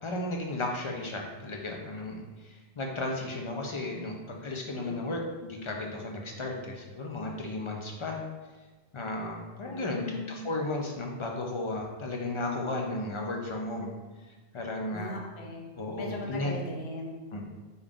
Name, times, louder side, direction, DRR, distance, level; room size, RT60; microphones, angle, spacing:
voice 1, 0.0-8.2 8.9-10.0 10.3-13.9 14.5-15.1 15.8-16.6 17.3-17.4, left 2 dB, 45° left, 0 dB, 0.4 m, -34 dB
voice 2, 4.7-5.1 9.7-10.4 14.9-15.7 16.0-17.2, left 2 dB, 75° left, 0 dB, 1.0 m, -39 dB
5.4 x 2.4 x 3.5 m, 1.3 s
omnidirectional pair, 1.1 m